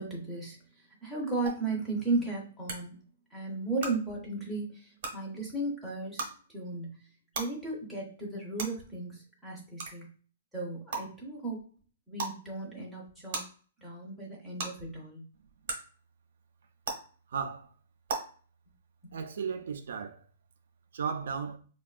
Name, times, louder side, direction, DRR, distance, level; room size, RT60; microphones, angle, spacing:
voice 1, 0.0-2.9 3.3-6.3 6.5-7.0 7.3-10.1 10.5-11.6 12.1-13.4 13.8-15.2 19.0-19.1, right 3 dB, ahead, 0.6 m, -35 dB
sound 1, 1.5-1.6 2.7-2.8 3.8-3.9 5.0-5.1 6.2-6.3 7.3-7.4 8.6-8.7 9.8-9.9 10.9-11.0 12.2-12.3 13.3-13.4 14.6-14.7 15.7-15.8 16.8-16.9 18.1-18.2, right 4 dB, 45° right, 0.8 m, -33 dB
voice 2, 17.3-17.7 19.1-20.2 20.9-21.6, right 6 dB, 65° right, 0.3 m, -35 dB
3.4 x 2.2 x 2.3 m
hypercardioid pair, 175°, 0 cm